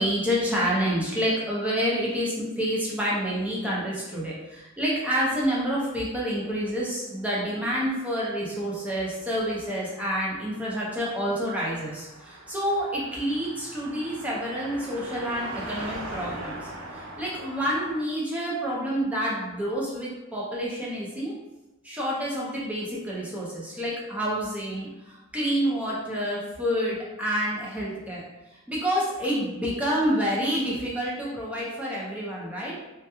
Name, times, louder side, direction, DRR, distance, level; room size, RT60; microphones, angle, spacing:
voice 1, 0.0-21.3 21.8-28.2 28.7-32.7, equal, 5° right, -6 dB, 0.5 m, -28 dB
Car passing by, 7.9-18.0, right 1 dB, 75° right, 0.5 m, -42 dB
2.2 x 2.1 x 2.8 m, 1.0 s
head